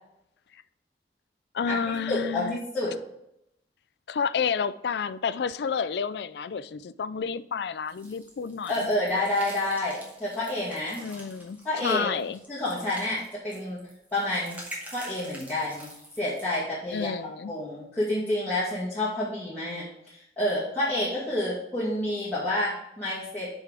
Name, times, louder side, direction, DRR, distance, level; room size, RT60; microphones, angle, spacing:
voice 1, 1.5-2.6 4.1-8.9 11.0-12.4 16.9-17.5, left 6 dB, 70° left, 0.4 m, -30 dB
voice 2, 2.1-3.0 8.7-11.0 11.6-12.1 12.5-13.8 14.1-14.6 14.9-15.9 16.2-17.1 17.5-23.5, left 1 dB, 10° left, 2.2 m, -29 dB
sound 1, 7.9-16.6, equal, 10° right, 1.9 m, -46 dB
6.7 x 5.5 x 4.8 m
head